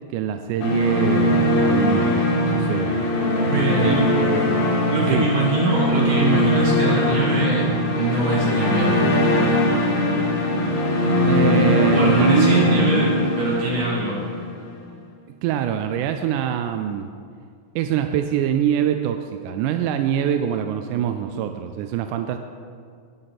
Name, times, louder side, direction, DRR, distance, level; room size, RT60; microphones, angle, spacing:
voice 1, 0.1-3.1 3.7-4.6 5.1-5.3 11.2-13.1 15.4-17.1 17.8-22.4, right 10 dB, 90° right, 7 dB, 2.1 m, -24 dB
sound 1, 0.6-14.7, left 1 dB, 65° left, 2.8 m, -20 dB
voice 2, 3.5-4.1 4.9-7.7 8.0-9.0 11.9-13.1 13.4-14.2, right 2 dB, 60° right, -5 dB, 3.7 m, -23 dB
17.5 x 7.8 x 4.1 m, 2.2 s
omnidirectional pair, 3.6 m